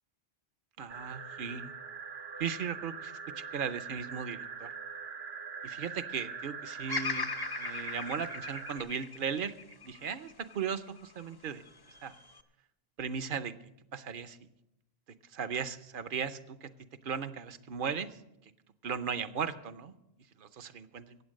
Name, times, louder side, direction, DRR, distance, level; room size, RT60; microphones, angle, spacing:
voice 1, 0.8-1.7 2.4-4.7 5.6-7.3 7.6-9.5 9.8-11.6 12.0-12.1 13.0-13.5 13.9-14.4 15.3-16.7 17.0-18.1 18.8-19.9 20.4-21.2, right 6 dB, 60° right, 13 dB, 0.9 m, -37 dB
sound 1, 0.9-8.8, right 5 dB, 85° right, 1.5 m, -43 dB
Bird vocalization bird call bird song, 6.9-11.1 11.7-12.4, left 4 dB, 30° left, 0.5 m, -39 dB
15.0 x 8.8 x 6.4 m, 0.85 s
omnidirectional pair, 1.0 m